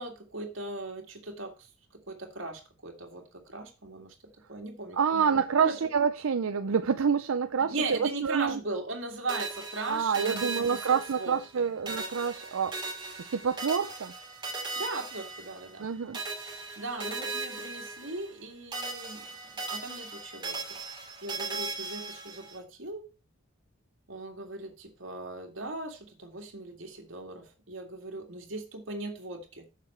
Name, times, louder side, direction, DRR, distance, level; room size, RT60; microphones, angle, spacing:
voice 1, 0.0-4.1 4.5-5.7 7.7-11.7 14.8-16.2 16.8-19.3 19.7-20.8 21.2-23.1 24.1-29.6, right 2 dB, 70° right, 2.3 m, -39 dB
voice 2, 4.9-8.6 9.9-12.8 13.3-14.1 15.8-16.2, right 6 dB, 90° right, 0.5 m, -27 dB
sound 1, 9.3-11.6 11.9-15.9 16.1-18.5 18.7-22.6, right 3 dB, 20° right, 2.5 m, -38 dB
7.5 x 6.9 x 4.4 m
head